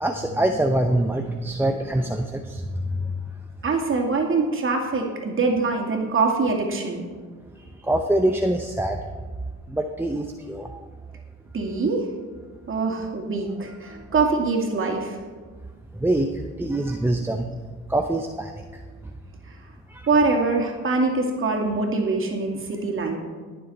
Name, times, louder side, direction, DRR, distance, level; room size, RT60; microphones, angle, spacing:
voice 1, 0.0-3.1 7.8-9.0 9.7-10.8 13.9-14.0 15.9-16.3 16.6-17.5 17.9-18.5 19.9-20.0, right 1 dB, 5° right, 4 dB, 0.7 m, -24 dB
voice 2, 3.6-7.0 11.5-12.1 12.7-15.2 20.1-23.2, right 3 dB, 45° right, 1 dB, 2.4 m, -23 dB
20.5 x 6.9 x 4.2 m, 1.5 s
cardioid pair, 90°, 30 cm